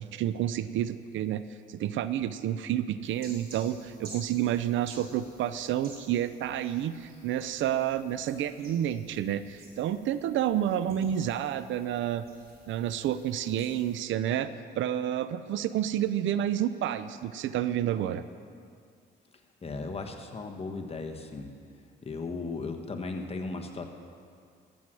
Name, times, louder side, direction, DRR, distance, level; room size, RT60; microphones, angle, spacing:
voice 1, 0.0-12.3 12.7-18.2, right 11 dB, 75° right, 13 dB, 0.5 m, -30 dB
sound 1, 3.0-14.0, right 2 dB, 55° right, 3.7 m, -53 dB
voice 2, 19.6-21.5 22.0-23.9, left 3 dB, 30° left, 4 dB, 1.3 m, -36 dB
14.0 x 7.9 x 6.1 m, 2.3 s
cardioid pair, 90°, 20 cm